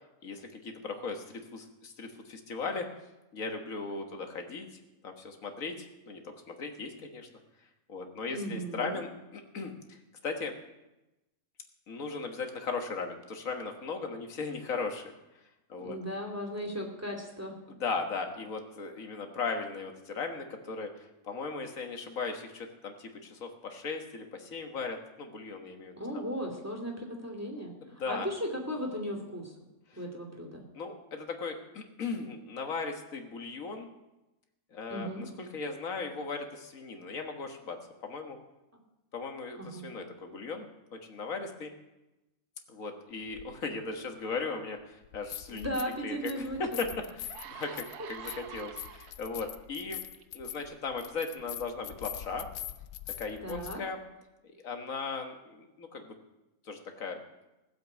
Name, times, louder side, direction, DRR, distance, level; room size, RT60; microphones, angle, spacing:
voice 1, 0.2-2.9 3.3-4.7 5.0-7.3 7.9-10.5 11.9-15.1 15.7-16.0 17.8-26.2 27.8-28.3 29.9-30.0 30.7-33.9 34.7-38.4 39.1-41.7 42.7-45.7 46.0-46.9 47.2-50.0 50.3-52.5 53.2-54.0 54.6-56.2 56.7-57.2, left 4 dB, 60° left, 4 dB, 1.8 m, -37 dB
voice 2, 8.3-9.0 15.8-17.5 26.0-29.5 30.0-30.6 34.9-35.2 39.6-39.9 45.5-46.8 47.5-47.6 48.2-48.4 53.4-53.8, equal, 10° right, 0 dB, 2.5 m, -36 dB
sound 1, 43.4-43.5 45.0-46.0 46.3-53.8, left 12 dB, 85° left, 1.2 m, -43 dB
sound 2, 46.5-46.6 47.1-49.5 50.1-50.4, right 9 dB, 85° right, 1.4 m, -46 dB
16.0 x 7.8 x 8.1 m, 0.99 s
omnidirectional pair, 1.6 m